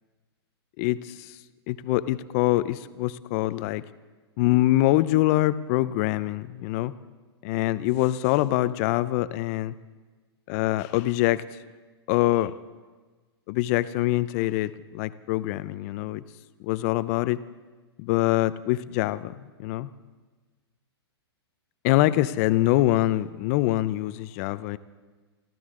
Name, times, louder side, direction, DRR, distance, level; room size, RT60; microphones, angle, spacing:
voice 1, 0.8-1.3 1.7-3.8 4.4-6.9 7.4-9.7 10.5-11.4 12.1-12.5 13.5-16.2 16.6-17.4 18.0-19.9 21.8-24.8, left 16 dB, 35° left, 15 dB, 0.5 m, -24 dB
24.0 x 15.0 x 3.7 m, 1.3 s
hypercardioid pair, 140°, 14 cm